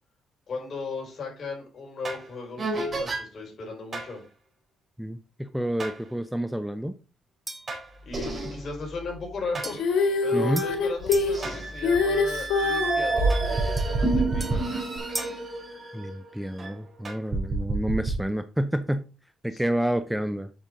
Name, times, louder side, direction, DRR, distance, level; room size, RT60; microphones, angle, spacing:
voice 1, 0.5-4.2 8.0-9.8 10.2-14.7 19.5-19.6, left 4 dB, 50° left, 0 dB, 5.3 m, -36 dB
sound 1, 2.0-2.3 2.6-3.2 3.9-4.1 5.8-6.0 7.7-9.7 10.3-10.4 11.0-16.7 17.0-18.1, right 3 dB, 35° right, 3.7 m, -29 dB
voice 2, 5.0-6.9 10.3-10.6 15.9-19.1 19.4-20.5, right 1 dB, 5° right, 10 dB, 0.6 m, -29 dB
sound 2, 7.5-7.8 9.6-11.4 13.8-15.5, right 2 dB, 20° right, 1.4 m, -39 dB
Female singing, 9.7-13.0 15.0-15.1, left 4 dB, 85° left, 1.9 m, -24 dB
9.0 x 6.1 x 3.8 m, 0.32 s
cardioid pair, 90°, 0 cm